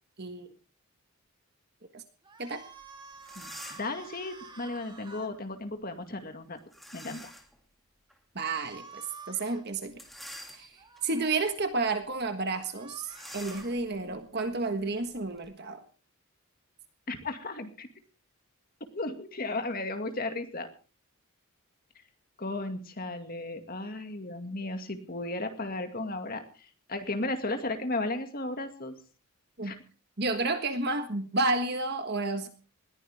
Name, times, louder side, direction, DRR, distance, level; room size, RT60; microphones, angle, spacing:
sound 1, 2.2-5.3 8.4-9.6 10.8-11.4 12.5-13.7, right 4 dB, 20° right, 2.0 m, -49 dB
sound 2, 2.8-2.9 3.2-4.0 6.7-7.6 8.1-8.2 9.9-11.0 11.6-11.8 12.0-12.2 13.0-15.5, equal, ahead, 2.3 m, -47 dB
voice 1, 3.4-6.6 6.9-7.3 17.1-17.9 18.9-20.7 22.0-22.1 22.4-29.0 29.6-29.8, left 2 dB, 40° left, 6 dB, 2.2 m, -35 dB
voice 2, 8.3-10.0 10.5-10.7 11.0-15.8 29.6-29.7 30.2-32.5, right 3 dB, 45° right, 7 dB, 1.5 m, -31 dB
20.5 x 15.0 x 3.6 m, 0.37 s
head